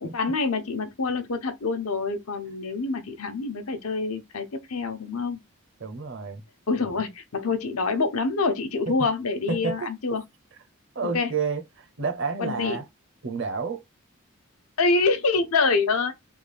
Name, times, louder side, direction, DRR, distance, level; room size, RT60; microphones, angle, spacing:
voice 1, 0.0-5.4 6.7-10.2 11.0-11.3 12.4-12.8 14.8-16.1, left 4 dB, 85° left, 0.8 m, -26 dB
voice 2, 5.8-6.4 8.9-9.0 9.5-9.9 10.9-12.8 13.2-13.8, right 4 dB, 55° right, 0.7 m, -30 dB
3.5 x 2.3 x 3.2 m
head